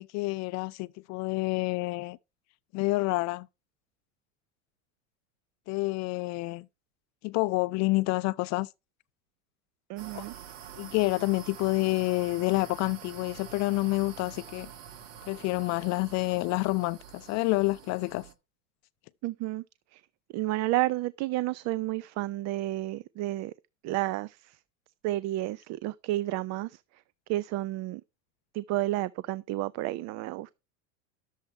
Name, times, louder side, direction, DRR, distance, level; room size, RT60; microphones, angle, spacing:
voice 1, 0.0-2.2 2.7-3.5 5.7-6.6 7.2-8.7 10.1-10.2 10.8-14.7 15.3-18.2, left 23 dB, 50° left, 0.5 m, -28 dB
voice 2, 9.9-10.3 19.2-19.6 19.9-20.0 20.3-23.5 23.8-24.6 25.0-26.8 27.3-28.0 28.5-30.6, right 16 dB, 45° right, 0.6 m, -31 dB
sound 1, 10.0-18.3, right 9 dB, 90° right, 1.6 m, -47 dB
12.0 x 7.3 x 4.4 m
supercardioid pair, 105°, 37 cm